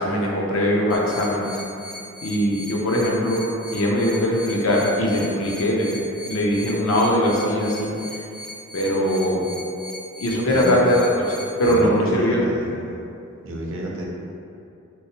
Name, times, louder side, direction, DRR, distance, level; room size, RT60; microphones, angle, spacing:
voice 1, 0.0-1.5 2.2-3.4 3.7-7.9 8.7-9.4 10.2-12.4, equal, 80° left, -3 dB, 0.6 m, -21 dB
sound 1, 0.9-11.7, equal, 5° right, 0.4 m, -39 dB
voice 2, 10.5-10.8 11.6-13.0 13.4-14.0, right 1 dB, 65° right, -2 dB, 0.6 m, -30 dB
3.1 x 3.1 x 2.8 m, 2.6 s
head